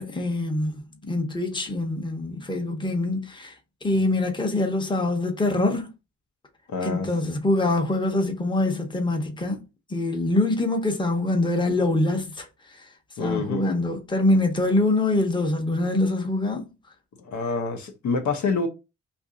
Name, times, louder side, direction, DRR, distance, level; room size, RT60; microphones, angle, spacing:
voice 1, 0.0-3.5 3.8-5.9 6.8-9.6 9.9-12.5 12.7-12.8 13.2-16.7, left 2 dB, 15° left, 0.8 m, -24 dB
voice 2, 6.7-7.1 13.2-13.6 17.2-18.7, left 4 dB, 70° left, 0.7 m, -27 dB
2.8 x 2.6 x 3.7 m
wide cardioid pair, 125°, 30 cm